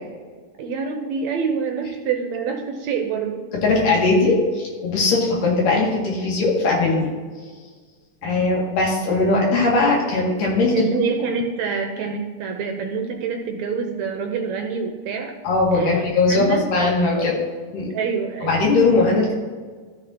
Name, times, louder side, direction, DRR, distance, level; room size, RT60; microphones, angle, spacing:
voice 1, 0.6-3.5 8.2-8.4 10.7-15.3 15.7-16.7 17.1-17.4 17.9-18.6, right 5 dB, 75° right, 4 dB, 1.8 m, -26 dB
voice 2, 3.6-7.1 8.2-10.9 15.4-17.4 17.7-17.9 18.4-19.3, left 3 dB, 85° left, -3 dB, 3.8 m, -19 dB
14.0 x 6.4 x 2.8 m, 1.5 s
omnidirectional pair, 3.7 m